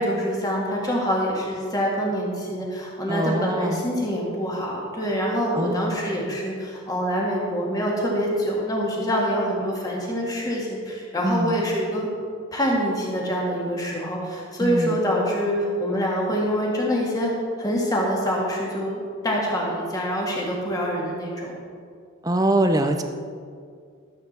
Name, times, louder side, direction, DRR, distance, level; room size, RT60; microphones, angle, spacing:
voice 1, 0.0-12.1 12.5-17.3 17.6-21.5, equal, 20° left, -3 dB, 1.8 m, -25 dB
voice 2, 3.1-3.8 5.5-6.0 11.2-11.6 14.6-15.0 22.2-23.0, right 1 dB, 15° right, 6 dB, 0.6 m, -23 dB
13.0 x 7.8 x 4.3 m, 2.2 s
head